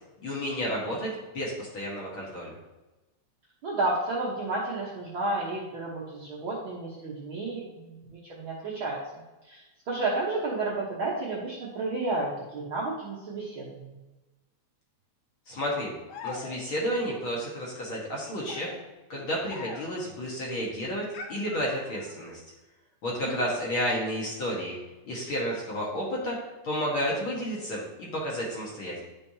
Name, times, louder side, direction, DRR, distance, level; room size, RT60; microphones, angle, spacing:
voice 1, 0.2-2.5 15.5-15.9 16.2-18.7 19.1-22.3 23.0-24.8 25.1-26.4 26.6-29.0, equal, 50° left, -4 dB, 1.7 m, -31 dB
voice 2, 3.6-9.0 9.4-14.0 23.2-23.5, right 2 dB, 60° right, -5 dB, 1.4 m, -31 dB
sound 1, 16.1-16.9 18.1-20.1 21.1-22.2, left 4 dB, 75° left, 1.8 m, -43 dB
10.5 x 5.5 x 2.8 m, 1.1 s
omnidirectional pair, 3.5 m